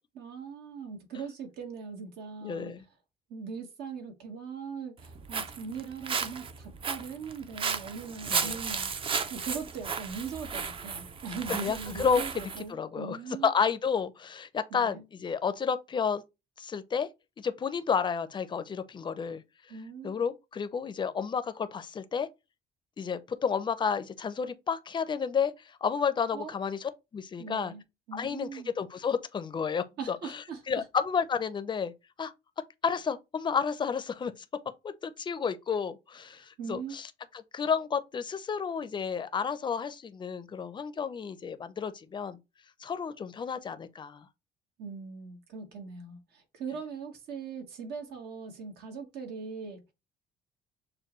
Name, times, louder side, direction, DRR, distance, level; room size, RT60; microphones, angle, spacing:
voice 1, 0.1-2.7 3.3-13.5 14.7-15.0 19.7-20.2 26.3-26.6 27.4-27.8 28.1-28.7 30.0-30.9 36.3-37.0 44.8-49.8, right 5 dB, 75° right, 1.4 m, -40 dB
voice 2, 2.4-2.8 8.3-8.5 11.5-12.2 12.7-13.2 13.4-16.2 16.6-17.1 17.4-19.4 20.0-22.3 23.0-27.7 28.1-30.4 30.7-31.9 32.2-32.3 32.8-34.3 34.8-37.1 37.3-42.4 42.8-44.3, left 6 dB, 25° left, 0.5 m, -31 dB
Walk footsteps, 5.0-12.6, right 5 dB, 30° right, 0.5 m, -34 dB
6.5 x 2.2 x 3.0 m
cardioid pair, 110°, 17 cm